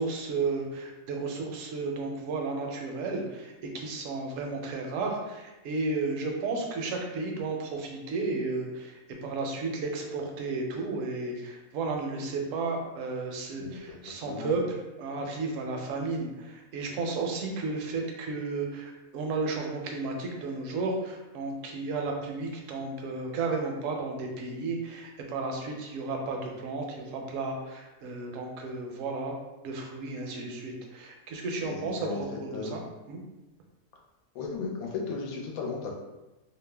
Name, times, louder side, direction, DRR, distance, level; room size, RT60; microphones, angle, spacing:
voice 1, 0.0-29.3 29.6-32.1 32.4-32.8 33.1-33.2, right 3 dB, 70° right, 1 dB, 0.9 m, -33 dB
voice 2, 13.6-14.0 14.3-14.5 31.6-32.7 34.3-35.9, left 4 dB, 85° left, 0 dB, 1.1 m, -35 dB
2.7 x 2.0 x 3.2 m, 1.1 s
omnidirectional pair, 1.5 m